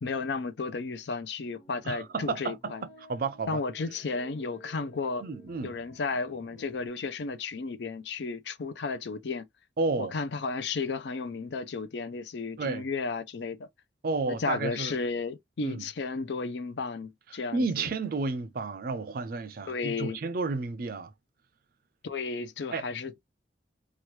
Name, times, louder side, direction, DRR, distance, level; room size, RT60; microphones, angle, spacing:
voice 1, 0.0-2.8 3.5-5.2 5.6-9.5 10.0-13.7 14.3-17.9 19.7-20.2 22.0-23.2, left 4 dB, 70° left, 0.5 m, -33 dB
sound 1, 1.5-6.9, right 1 dB, 35° left, 1.0 m, -54 dB
voice 2, 1.8-2.7 3.1-3.6 5.2-5.8 9.8-10.1 12.6-12.8 14.0-15.0 15.6-15.9 17.3-21.1 22.7-22.8, right 3 dB, 50° right, 0.4 m, -31 dB
2.9 x 2.3 x 3.1 m
head